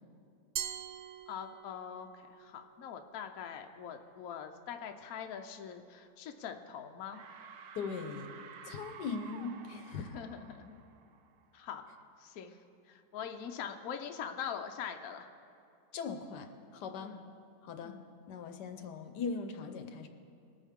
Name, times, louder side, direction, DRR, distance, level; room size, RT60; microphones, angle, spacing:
Glass, 0.6-2.0, right 10 dB, 90° right, 0.6 m, -41 dB
voice 1, 1.3-7.2 10.0-10.8 11.5-11.8 12.2-12.6 12.9-15.3 17.0-17.2 17.8-18.0, left 8 dB, 65° left, 5 dB, 1.1 m, -43 dB
sound 1, 6.4-6.8 7.1-11.7, right 7 dB, 60° right, 0.9 m, -52 dB
voice 2, 7.7-8.3 8.6-10.1 15.9-17.2 17.6-18.0 18.3-20.1, left 5 dB, 80° left, 7 dB, 1.4 m, -40 dB
21.0 x 9.2 x 3.6 m, 2.6 s
omnidirectional pair, 1.8 m